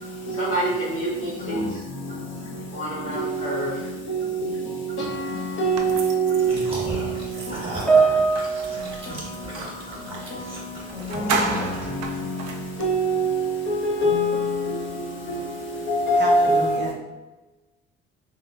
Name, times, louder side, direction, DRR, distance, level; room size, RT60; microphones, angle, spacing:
voice 1, 0.3-1.8 2.7-3.8 8.0-8.1, right 1 dB, 75° left, 1.3 m, -28 dB
voice 2, 4.1-4.6 5.0-5.1 5.6-6.9 11.3-11.6 12.8-16.8, right 2 dB, 35° left, 1.1 m, -23 dB
sound 1, 5.7-9.8 10.5-10.6 10.9-12.9, right 4 dB, 55° right, 0.6 m, -33 dB
sound 2, 6.4-12.1, right 2 dB, 15° right, 1.3 m, -36 dB
Piano, 7.9-10.5 10.8-11.1 11.9-12.0, right 4 dB, 5° left, 1.1 m, -24 dB
voice 3, 16.1-16.9, right 2 dB, 35° right, 0.9 m, -32 dB
3.0 x 2.8 x 2.6 m
hypercardioid pair, 55°, 32 cm